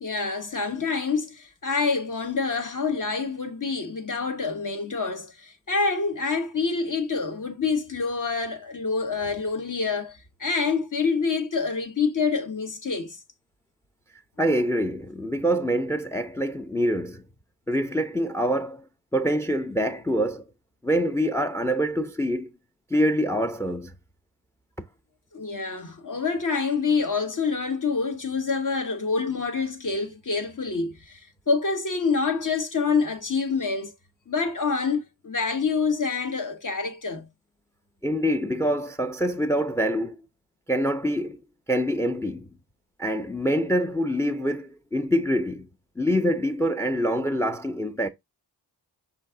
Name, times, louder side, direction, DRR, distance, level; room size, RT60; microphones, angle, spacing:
voice 1, 0.0-13.2 25.3-33.9 34.3-37.3, left 4 dB, 50° left, 1.1 m, -27 dB
voice 2, 14.4-17.2 17.7-18.8 19.1-20.4 20.8-22.5 22.9-23.9 38.0-40.2 40.7-41.4 41.7-42.5 43.0-45.7 46.0-48.1, equal, 5° left, 0.5 m, -25 dB
5.7 x 2.6 x 3.6 m
wide cardioid pair, 60°, 41 cm